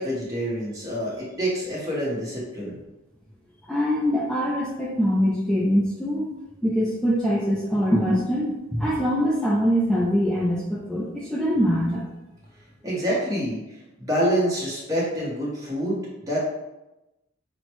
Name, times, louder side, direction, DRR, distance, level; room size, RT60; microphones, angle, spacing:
voice 1, 0.0-2.8 12.8-13.6 14.0-16.4, equal, 15° right, -6 dB, 1.0 m, -27 dB
voice 2, 3.7-6.3 6.6-12.0, equal, ahead, -7 dB, 0.4 m, -23 dB
5.9 x 2.1 x 3.0 m, 1.0 s
head